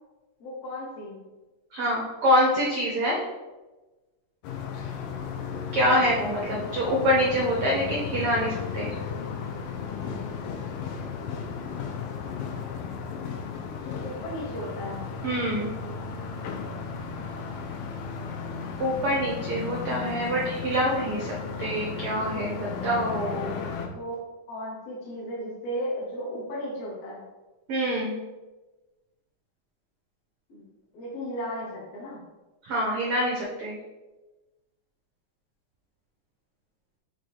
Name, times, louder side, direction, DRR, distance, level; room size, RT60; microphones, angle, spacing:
voice 1, 0.4-1.2 13.8-15.1 23.9-24.1 24.5-27.2 30.5-30.6 30.9-32.2, equal, 60° left, -5 dB, 1.8 m, -35 dB
voice 2, 1.7-3.2 5.7-9.0 15.2-15.7 18.8-21.3 21.6-23.5 27.7-28.1 32.6-33.8, equal, 80° right, -3 dB, 1.2 m, -25 dB
sound 1, 4.4-23.9, left 6 dB, 75° left, 2.3 m, -35 dB
8.0 x 3.1 x 4.6 m, 1.1 s
omnidirectional pair, 4.1 m